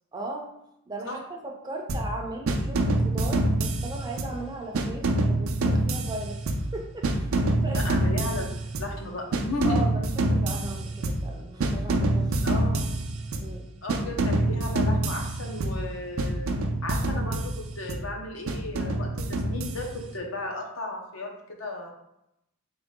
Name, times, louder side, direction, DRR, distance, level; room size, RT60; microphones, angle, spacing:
voice 1, 0.1-0.5 0.9-7.4 7.6-7.8 9.6-12.5 13.4-13.7, right 2 dB, 20° right, 1 dB, 0.5 m, -37 dB
sound 1, 1.9-2.2 2.5-4.4 4.7-6.8 7.0-9.0 9.3-11.3 11.6-13.6 13.9-15.9 16.2-18.1 18.5-20.1, right 1 dB, 80° right, 0.5 m, -26 dB
voice 2, 7.7-8.5 8.8-9.8 12.4-12.9 13.8-16.5 16.8-21.9, left 2 dB, 75° left, 1 dB, 0.8 m, -35 dB
3.8 x 3.2 x 3.6 m, 0.84 s
head